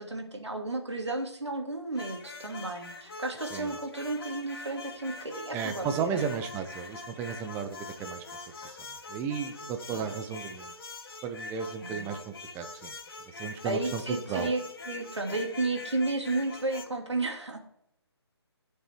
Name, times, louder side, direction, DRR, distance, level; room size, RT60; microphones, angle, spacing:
voice 1, 0.0-6.3 9.9-10.1 11.8-12.1 13.6-17.6, right 2 dB, 90° right, 3 dB, 2.7 m, -33 dB
sound 1, 1.9-16.9, left 3 dB, 55° left, 2.3 m, -43 dB
voice 2, 5.5-8.2 9.1-10.7 11.2-12.9 13.3-14.5, right 7 dB, 15° right, 8 dB, 0.8 m, -34 dB
16.5 x 6.8 x 4.5 m, 0.78 s
figure-of-eight pair, 150°, 14 cm